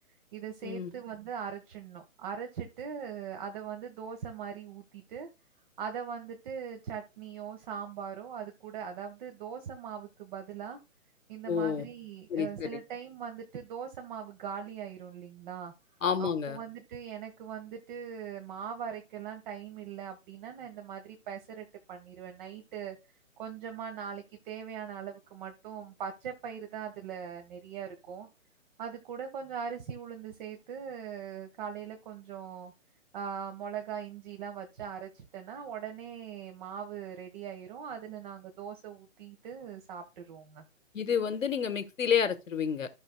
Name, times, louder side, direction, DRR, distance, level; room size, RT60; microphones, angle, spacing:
voice 1, 0.3-5.3 5.8-10.8 11.3-15.7 16.2-23.0 23.4-28.3 28.8-32.7 33.1-40.6, right 7 dB, 35° right, 1.3 m, -41 dB
voice 2, 11.5-11.9 12.3-12.8 16.0-16.6 40.9-42.9, left 7 dB, 70° left, 1.3 m, -29 dB
15.0 x 5.6 x 2.2 m
figure-of-eight pair, 135°, 41 cm